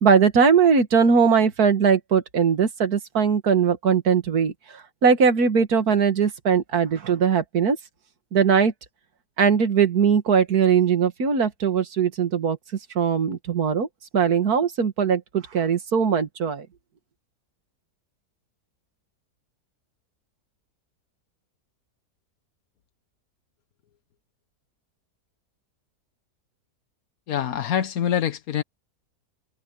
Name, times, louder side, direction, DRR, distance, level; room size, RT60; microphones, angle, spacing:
voice 1, 0.0-4.5 5.0-7.8 8.3-8.7 9.4-12.6 13.0-13.9 14.1-16.7, right 6 dB, 65° right, 2.2 m, -20 dB
voice 2, 27.3-28.6, left 9 dB, 65° left, 1.3 m, -25 dB
omnidirectional pair, 1.7 m